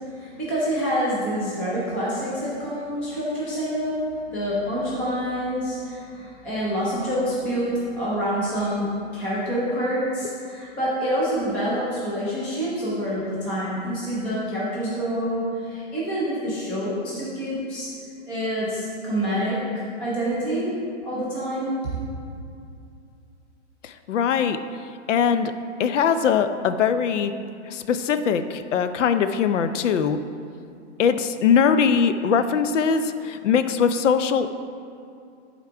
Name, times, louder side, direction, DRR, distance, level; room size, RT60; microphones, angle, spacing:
voice 1, 0.1-17.9 18.3-20.8 21.0-21.9, equal, 5° left, -8 dB, 0.4 m, -27 dB
voice 2, 23.8-24.6 25.1-25.5 25.8-27.3 27.7-30.2 31.0-34.5, left 7 dB, 80° left, 10 dB, 0.6 m, -21 dB
11.0 x 3.7 x 4.6 m, 2.5 s
hypercardioid pair, 155°, 36 cm